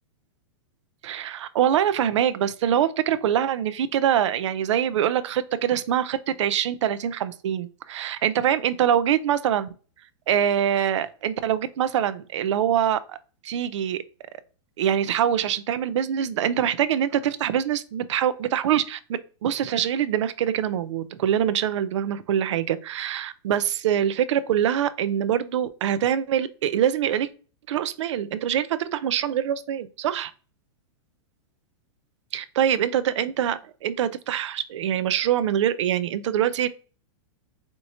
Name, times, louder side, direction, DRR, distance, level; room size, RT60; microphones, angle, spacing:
voice 1, 1.0-9.7 10.3-13.2 13.4-14.0 14.8-19.0 19.4-27.3 27.7-30.3 32.3-36.7, right 10 dB, 70° right, 0.4 m, -24 dB
4.5 x 2.9 x 2.6 m
supercardioid pair, 165°, 16 cm